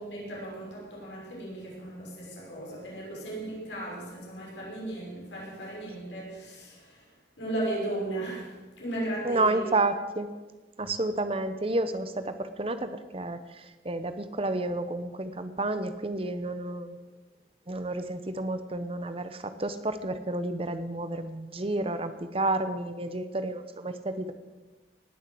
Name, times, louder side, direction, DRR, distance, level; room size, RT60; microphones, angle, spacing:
voice 1, 0.0-7.1 7.4-9.6, right 1 dB, 90° left, 6.2 m, -36 dB
voice 2, 9.2-10.3 10.8-17.0 17.7-24.3, right 2 dB, 30° right, 1.0 m, -30 dB
19.0 x 7.4 x 7.8 m
head